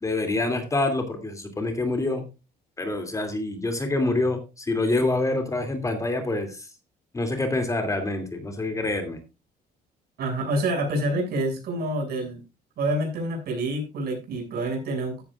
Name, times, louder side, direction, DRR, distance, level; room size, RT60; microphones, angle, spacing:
voice 1, 0.0-2.2 2.8-6.7 7.1-9.2, left 2 dB, 20° left, 6 dB, 2.8 m, -26 dB
voice 2, 10.2-12.4 12.8-15.2, right 1 dB, 65° right, 2 dB, 6.8 m, -27 dB
14.5 x 11.0 x 2.5 m, 0.28 s
cardioid pair, 110°, 17 cm